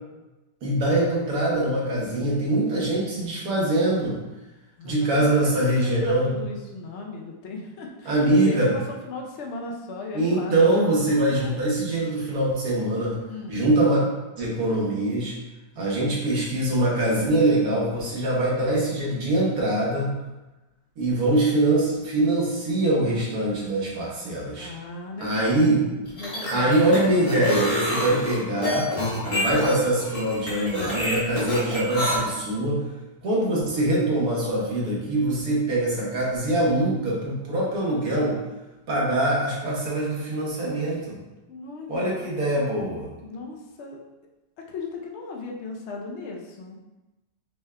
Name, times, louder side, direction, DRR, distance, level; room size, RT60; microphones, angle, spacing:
voice 1, 0.6-4.2 4.8-6.3 8.0-8.7 10.1-13.2 13.5-14.0 14.4-15.3 15.8-20.1 21.0-24.7 25.2-25.9 26.5-28.9 29.2-32.8 33.2-38.4 38.9-41.2 41.9-43.1, right 1 dB, 60° right, -4 dB, 1.5 m, -23 dB
voice 2, 4.8-8.6 8.9-10.6 13.3-13.6 24.6-27.2 27.8-28.1 41.5-42.3 43.2-44.0 44.7-46.8, left 3 dB, 70° left, 0 dB, 0.6 m, -37 dB
sound 1, 26.1-32.1, left 1 dB, 25° left, 1.0 m, -27 dB
5.4 x 3.5 x 2.2 m, 1.1 s
omnidirectional pair, 1.9 m